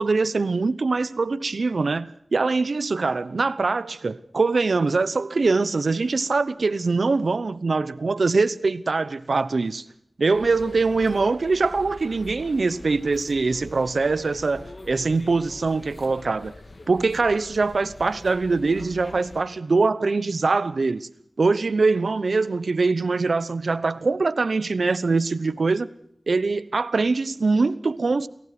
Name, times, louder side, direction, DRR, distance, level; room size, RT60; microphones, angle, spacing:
voice 1, 0.0-9.8 10.2-16.5 16.9-21.1 21.4-25.9 26.3-28.3, right 3 dB, 80° right, 0.9 m, -23 dB
sound 1, 10.3-19.4, left 2 dB, 55° left, 1.8 m, -44 dB
28.5 x 15.5 x 6.0 m
wide cardioid pair, 80°, 0 cm